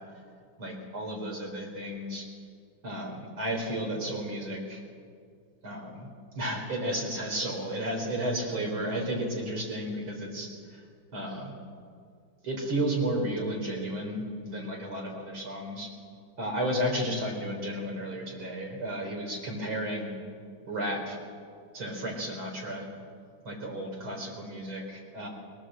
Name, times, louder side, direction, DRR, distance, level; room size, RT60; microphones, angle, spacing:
voice 1, 0.6-2.2 2.8-4.8 5.6-6.1 6.4-10.5 11.1-11.5 12.4-15.9 16.4-20.1 20.7-21.2 21.7-22.8 23.4-25.3, right 1 dB, 70° right, 0 dB, 4.8 m, -33 dB
22.5 x 17.5 x 7.7 m, 2.2 s
omnidirectional pair, 2.3 m